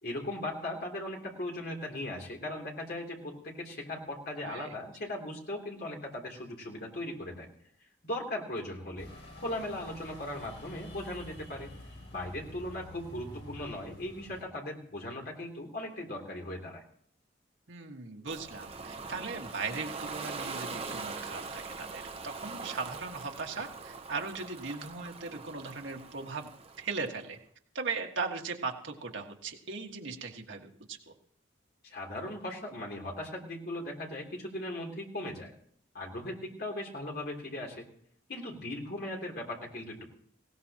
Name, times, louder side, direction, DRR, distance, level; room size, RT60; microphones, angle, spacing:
voice 1, 0.0-7.5 8.0-9.1 9.4-11.7 12.1-16.8 31.8-35.5 35.9-37.9 38.3-40.0, left 1 dB, 55° left, 0 dB, 3.1 m, -38 dB
sound 1, 9.0-14.4, equal, 75° left, 7.5 m, -48 dB
voice 2, 17.7-26.5 26.8-27.4 27.8-31.1, right 4 dB, 80° right, 2 dB, 1.7 m, -38 dB
Ocean, 18.3-27.1, right 4 dB, 30° right, 0.9 m, -42 dB
19.0 x 17.5 x 2.9 m, 0.64 s
head